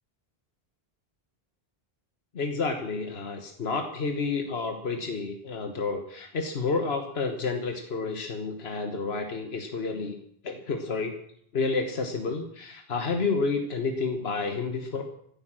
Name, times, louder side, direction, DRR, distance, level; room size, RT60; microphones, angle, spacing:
voice 1, 2.3-10.2 10.4-11.2 11.5-15.0, left 4 dB, 85° left, 5 dB, 1.5 m, -30 dB
14.5 x 10.5 x 7.5 m, 0.68 s
omnidirectional pair, 1.0 m